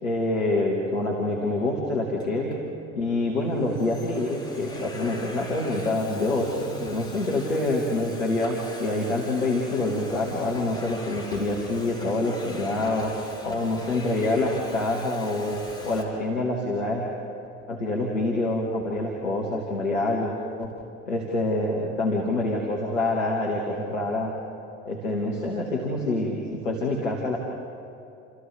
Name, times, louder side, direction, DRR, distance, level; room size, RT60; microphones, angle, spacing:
voice 1, 0.0-2.6 2.9-13.1 13.4-15.6 15.8-17.1 17.7-20.3 20.6-20.7 21.1-24.3 24.9-27.4, left 2 dB, 80° left, -2 dB, 2.2 m, -26 dB
Domestic sounds home sounds, 2.2-2.6 3.3-16.0, left 1 dB, 10° left, 5.0 m, -42 dB
29.5 x 28.0 x 3.6 m, 2.6 s
figure-of-eight pair, 60°, 37 cm